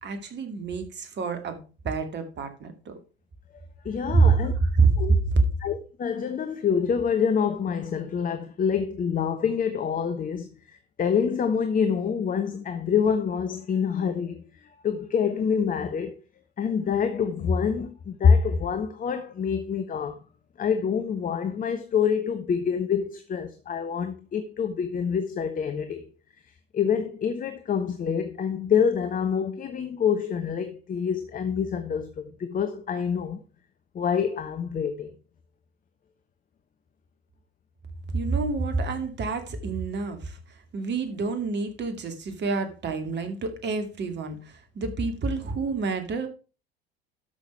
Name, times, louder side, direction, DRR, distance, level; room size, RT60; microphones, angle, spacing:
voice 1, 0.0-1.6 1.8-2.9 4.1-4.9 38.1-46.3, right 4 dB, 35° right, 2.4 m, -27 dB
voice 2, 3.8-4.5 5.0-5.1 5.6-16.2 16.6-20.2 20.6-26.0 26.7-33.4 33.9-35.1, left 7 dB, 25° left, 1.1 m, -26 dB
12.5 x 6.3 x 4.6 m
figure-of-eight pair, 70°, 31 cm